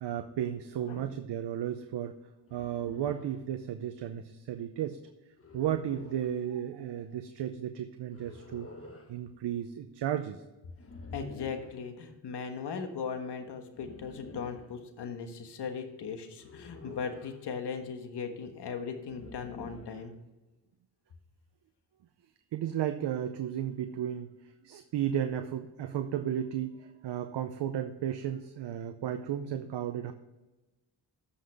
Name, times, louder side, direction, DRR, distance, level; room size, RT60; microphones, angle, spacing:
voice 1, 0.0-2.2 2.5-5.0 5.5-8.7 9.1-10.4 22.5-24.3 24.6-30.1, right 10 dB, 90° right, 8 dB, 0.7 m, -34 dB
sound 1, 2.5-3.4 5.4-6.4 8.1-9.1 10.8-11.8 13.7-14.7 16.4-17.4 19.1-20.1, left 3 dB, 35° left, 1.4 m, -49 dB
voice 2, 11.1-20.1, left 6 dB, 80° left, 6 dB, 1.5 m, -38 dB
14.0 x 5.7 x 3.5 m, 1.1 s
cardioid pair, 105°, 40 cm